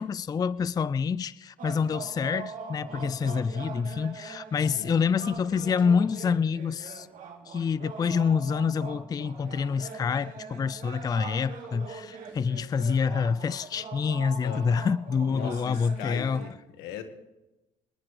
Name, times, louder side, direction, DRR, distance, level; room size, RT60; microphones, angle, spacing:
voice 1, 0.0-7.1 7.5-16.4, left 6 dB, 25° left, 0.4 m, -27 dB
sound 1, 1.6-16.5, right 5 dB, 55° right, 3.1 m, -42 dB
voice 2, 14.4-14.8 15.3-17.0, left 8 dB, 85° left, 1.6 m, -40 dB
26.0 x 10.5 x 3.3 m
cardioid pair, 90°, 16 cm